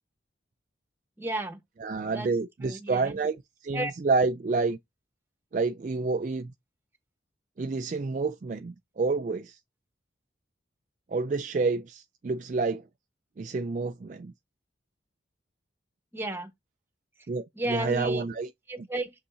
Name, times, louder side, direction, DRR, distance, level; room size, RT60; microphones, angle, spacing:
voice 1, 1.2-1.6 2.1-2.3 2.6-3.2 3.7-3.9 16.1-16.5 17.5-18.2 18.7-19.1, right 1 dB, 10° right, 1.3 m, -32 dB
voice 2, 1.8-4.8 5.5-6.5 7.6-9.6 11.1-12.8 13.4-14.3 17.3-18.5, right 4 dB, 40° right, 0.4 m, -29 dB
6.7 x 5.3 x 2.8 m
head